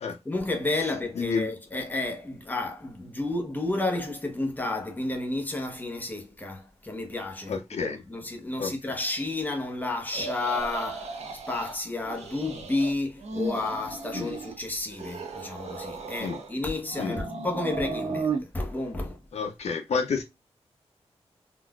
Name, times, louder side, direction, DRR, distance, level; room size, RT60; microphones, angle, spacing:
voice 1, 0.2-11.1 11.5-19.2, left 2 dB, 15° left, 0.9 m, -31 dB
voice 2, 1.2-1.5 7.5-8.0 8.6-8.7 14.1-14.3 16.2-16.4 17.0-17.3 19.3-20.2, left 5 dB, 75° left, 0.6 m, -29 dB
sound 1, 10.1-11.8 12.0-12.9 13.2-14.6 14.9-16.5 16.9-18.4, right 4 dB, 80° right, 0.8 m, -35 dB
3.8 x 2.4 x 2.3 m
wide cardioid pair, 90°, 11 cm